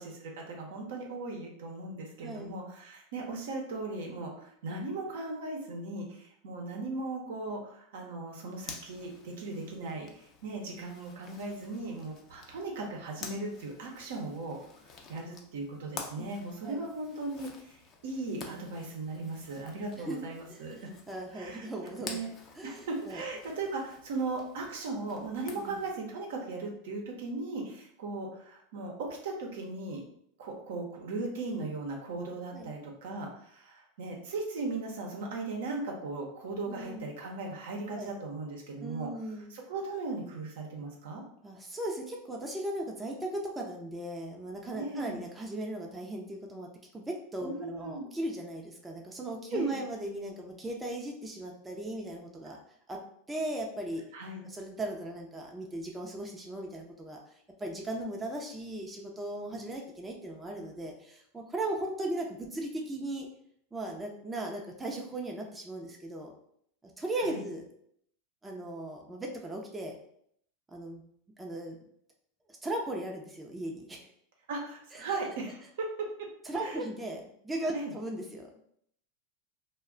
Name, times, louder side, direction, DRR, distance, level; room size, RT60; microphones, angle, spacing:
voice 1, 0.0-14.6 15.1-20.9 21.3-21.7 22.0-22.3 22.6-30.0 30.4-39.1 39.5-41.2 44.7-45.2 47.4-48.1 49.5-49.8 52.4-52.6 54.1-54.4 67.2-67.4 74.5-76.3 76.6-76.8 77.7-77.9, right 3 dB, 75° right, 0 dB, 0.7 m, -38 dB
Zipper (clothing), 8.6-25.9, left 4 dB, 35° left, 0.5 m, -50 dB
voice 2, 9.6-9.9 16.2-16.3 16.6-16.8 20.0-20.2 20.5-20.6 20.9-22.2 22.6-23.2 25.6-25.8 32.5-32.7 36.7-37.1 38.0-38.1 38.8-39.5 41.4-46.7 46.9-52.6 52.9-53.0 53.3-54.0 54.4-57.2 57.6-63.3 63.7-66.3 67.0-67.7 68.4-69.9 70.7-71.0 71.4-71.8 72.6-74.1 76.4-78.5, right 1 dB, 10° right, 0 dB, 0.5 m, -37 dB
2.3 x 2.2 x 3.7 m, 0.69 s
hypercardioid pair, 110°, 0 cm